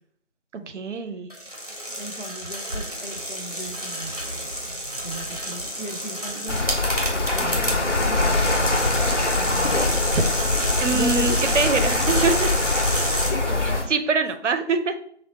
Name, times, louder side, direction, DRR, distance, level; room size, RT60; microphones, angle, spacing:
voice 1, 0.7-1.3 7.4-7.7 10.8-12.5 13.9-15.0, right 4 dB, 85° right, 8 dB, 0.5 m, -24 dB
sound 1, 1.3-13.3, equal, 35° right, 0.5 m, -30 dB
voice 2, 2.0-4.4 5.0-8.8 9.3-10.0 10.9-12.1 13.0-13.9, equal, 50° left, 5 dB, 0.4 m, -37 dB
sound 2, 6.5-13.8, left 2 dB, 90° left, 0.8 m, -23 dB
3.8 x 2.0 x 2.6 m, 0.64 s
figure-of-eight pair, 165°, 35 cm